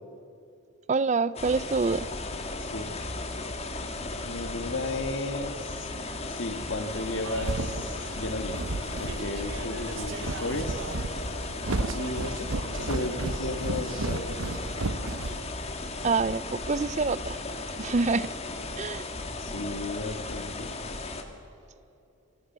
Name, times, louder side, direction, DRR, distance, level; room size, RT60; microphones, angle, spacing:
voice 1, 0.9-2.1 16.0-17.4 17.8-18.3 18.8-19.1, right 4 dB, 30° right, 18 dB, 0.4 m, -26 dB
sound 1, 1.4-21.2, left 2 dB, 30° left, 1.7 m, -36 dB
voice 2, 2.6-2.9 4.2-5.9 6.3-8.7 9.0-10.9 11.9-12.5 12.8-14.4 19.4-20.7, left 2 dB, 55° left, 7 dB, 1.8 m, -34 dB
Speech / Chatter, 6.0-15.4, right 5 dB, 60° right, 0.9 m, -44 dB
sound 2, 7.0-15.9, right 2 dB, 85° right, 1.1 m, -33 dB
28.0 x 18.0 x 7.4 m, 2.8 s
head